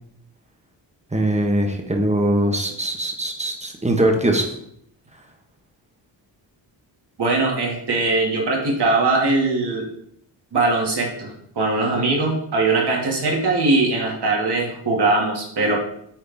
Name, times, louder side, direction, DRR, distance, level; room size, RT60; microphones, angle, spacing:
voice 1, 1.1-4.4, right 1 dB, 15° right, 3 dB, 1.3 m, -21 dB
voice 2, 7.2-9.9 10.5-15.8, right 3 dB, 60° right, -1 dB, 2.2 m, -21 dB
8.5 x 3.6 x 3.6 m, 0.71 s
cardioid pair, 70°, 46 cm